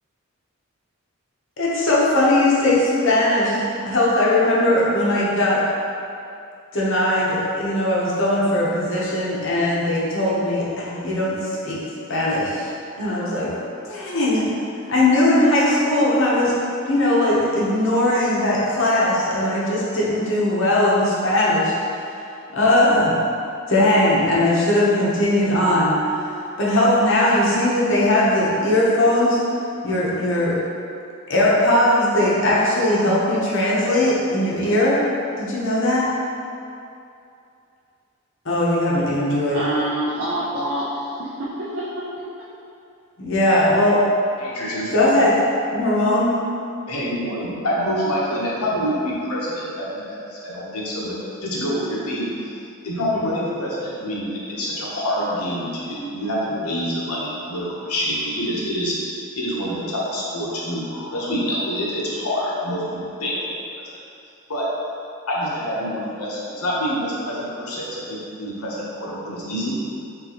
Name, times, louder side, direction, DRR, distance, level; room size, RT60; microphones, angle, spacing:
voice 1, 1.6-5.6 6.7-11.8 12.1-12.7 13.0-13.5 13.9-14.5 14.9-16.5 16.9-21.7 22.5-23.1 23.7-25.9 26.6-29.4 29.8-30.6 31.3-35.0 35.4-36.1 38.4-39.6 43.2-44.0 44.9-45.4 45.7-46.4, left 1 dB, 55° left, -6 dB, 0.8 m, -19 dB
voice 2, 39.5-42.5, right 1 dB, 60° right, -8 dB, 0.5 m, -27 dB
voice 3, 44.4-45.2 46.9-51.1 51.4-52.3 52.8-62.8 63.2-63.4 64.5-64.7 65.3-69.7, equal, 85° left, -6 dB, 1.0 m, -26 dB
3.9 x 3.5 x 2.9 m, 2.6 s
head